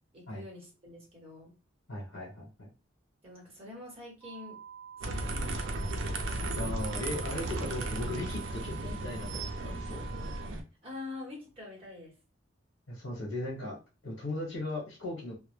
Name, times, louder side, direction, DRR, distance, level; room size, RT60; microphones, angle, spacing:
voice 1, 0.1-1.5 3.2-4.6 5.0-5.8 10.8-12.1, left 2 dB, 30° right, -2 dB, 1.0 m, -45 dB
voice 2, 1.9-2.7 6.5-10.0 12.9-13.8 14.0-15.4, left 1 dB, 65° left, -3 dB, 1.0 m, -37 dB
sound 1, 4.2-10.5, right 8 dB, 20° left, 0.5 m, -48 dB
sound 2, 5.0-10.6, right 2 dB, 65° right, 0.4 m, -35 dB
2.1 x 2.0 x 3.0 m, 0.31 s
head